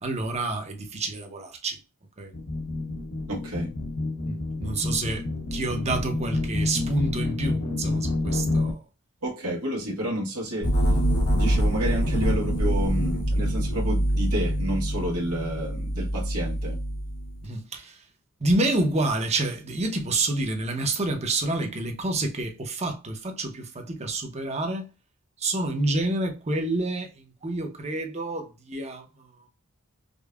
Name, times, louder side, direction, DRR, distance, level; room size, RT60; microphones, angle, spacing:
voice 1, 0.0-1.8 2.2-2.3 4.3-8.8 17.4-18.0 18.4-24.9 25.4-29.3, right 2 dB, 30° right, 0.8 m, -28 dB
sound 1, 2.3-8.7, left 2 dB, 65° left, 0.9 m, -29 dB
voice 2, 3.3-3.7 9.2-10.7 11.3-16.8, equal, 85° right, 1.3 m, -30 dB
sound 2, 10.6-17.4, equal, 85° left, 1.6 m, -25 dB
5.1 x 2.2 x 2.3 m
head